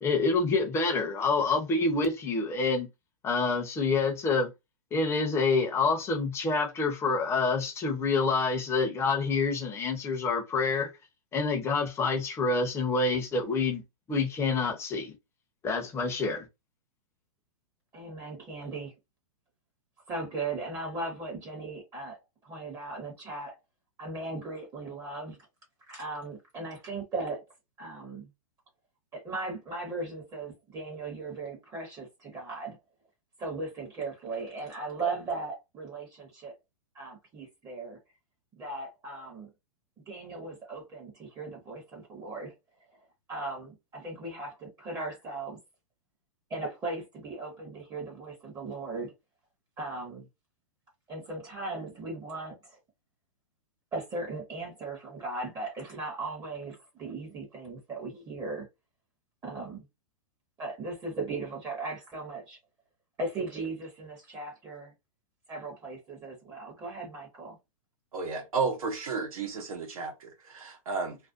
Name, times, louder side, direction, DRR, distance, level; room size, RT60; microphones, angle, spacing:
voice 1, 0.0-2.9 3.2-4.5 4.9-10.9 11.3-13.8 14.1-15.2 15.6-16.5, left 4 dB, 15° left, 0.6 m, -27 dB
voice 2, 17.9-18.9 20.1-22.2 22.4-23.6 24.0-25.4 25.9-27.4 27.8-28.3 29.1-32.8 33.4-36.5 36.9-38.0 38.6-39.5 40.1-42.5 43.3-45.6 46.5-49.1 49.8-50.3 51.1-52.8 53.9-58.7 59.4-59.8 60.6-62.6 63.2-64.9 65.5-67.6, right 3 dB, 20° right, 0.7 m, -37 dB
voice 3, 68.1-71.2, right 4 dB, 80° right, 0.8 m, -32 dB
2.5 x 2.1 x 2.4 m
hypercardioid pair, 135°, 18 cm